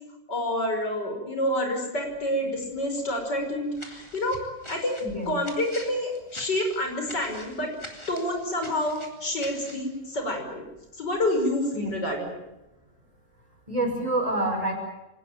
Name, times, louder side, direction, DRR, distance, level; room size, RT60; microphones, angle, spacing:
voice 1, 0.3-4.4 4.7-5.0 5.2-7.7 8.1-10.7 11.0-12.3, left 1 dB, 85° left, 4 dB, 6.4 m, -28 dB
sound 1, 3.7-9.9, left 1 dB, 15° left, 3.7 m, -44 dB
voice 2, 13.7-14.7, right 1 dB, 20° right, 2 dB, 6.2 m, -27 dB
26.0 x 19.5 x 9.1 m, 0.94 s
omnidirectional pair, 1.8 m